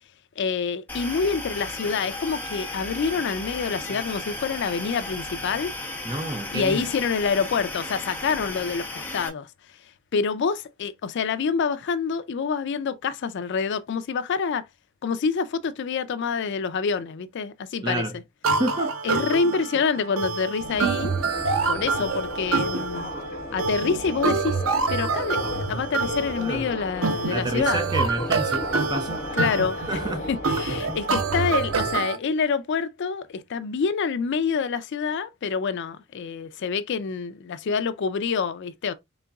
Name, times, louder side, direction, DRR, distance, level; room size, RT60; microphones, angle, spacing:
voice 1, 0.4-5.7 6.5-9.5 10.1-14.7 15.0-18.1 19.0-21.1 21.7-23.1 23.5-27.8 29.3-29.8 30.3-38.9, left 5 dB, 60° left, 0.4 m, -27 dB
sound 1, 0.9-9.3, left 2 dB, 10° left, 0.9 m, -35 dB
voice 2, 6.0-6.9 17.8-18.2 18.6-18.9 26.4-26.7 27.3-29.2 29.9-30.3 30.7-31.0, right 1 dB, 20° right, 0.7 m, -29 dB
sound 2, 18.4-32.2, right 4 dB, 85° right, 0.7 m, -27 dB
Subway metro underground, 20.6-32.0, left 2 dB, 40° left, 1.1 m, -36 dB
3.9 x 3.8 x 2.3 m
head